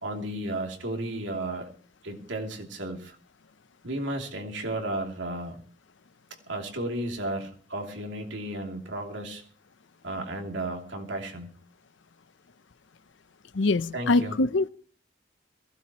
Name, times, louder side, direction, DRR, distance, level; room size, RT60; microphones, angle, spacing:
voice 1, 0.0-1.7 2.0-3.2 3.8-5.6 6.5-9.4 10.0-11.5 13.9-14.4, right 1 dB, 80° right, 2.9 m, -33 dB
voice 2, 13.5-14.7, left 3 dB, 85° left, 0.7 m, -23 dB
22.0 x 16.5 x 3.0 m
head